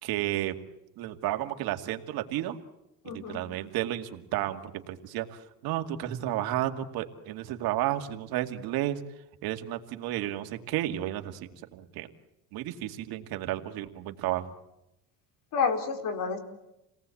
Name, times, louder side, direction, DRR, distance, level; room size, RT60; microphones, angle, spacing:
voice 1, 0.0-0.5 1.0-2.6 3.0-9.0 9.4-12.1 12.5-14.5, right 13 dB, 80° right, 6 dB, 2.3 m, -32 dB
voice 2, 3.0-3.4 15.5-16.4, left 5 dB, 60° left, 6 dB, 4.5 m, -29 dB
29.0 x 19.0 x 8.5 m, 0.87 s
cardioid pair, 120°, 36 cm